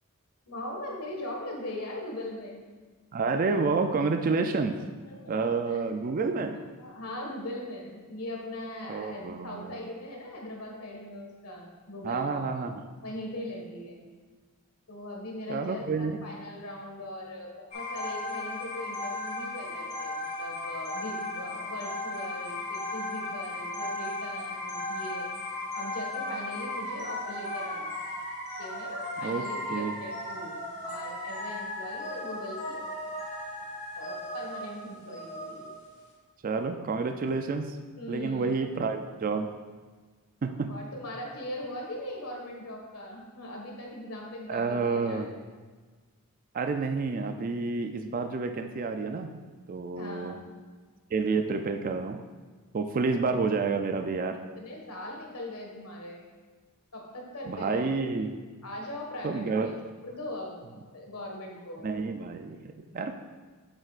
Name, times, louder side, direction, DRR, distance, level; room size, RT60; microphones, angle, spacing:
voice 1, 0.5-2.6 5.0-5.4 5.7-5.8 6.8-12.7 13.0-14.0 14.9-25.3 25.7-28.1 28.6-32.9 34.0-35.7 38.0-38.6 40.7-45.2 49.9-50.4 54.5-56.2 56.9-57.9 58.2-58.3 58.6-59.7 60.0-60.5 60.9-61.9, left 1 dB, 85° left, -1 dB, 1.6 m, -40 dB
voice 2, 3.1-4.8 5.3-6.6 8.9-9.7 12.0-12.9 15.5-16.2 29.2-29.9 36.4-37.8 38.1-39.5 40.4-40.7 44.5-45.3 46.5-49.4 49.7-50.3 51.1-52.2 52.7-54.4 57.5-58.4 59.2-59.8 61.8-63.1, right 4 dB, 40° right, 7 dB, 0.3 m, -29 dB
sound 1, 17.7-36.1, left 2 dB, 30° left, 1.6 m, -36 dB
8.0 x 7.9 x 2.4 m, 1.4 s
head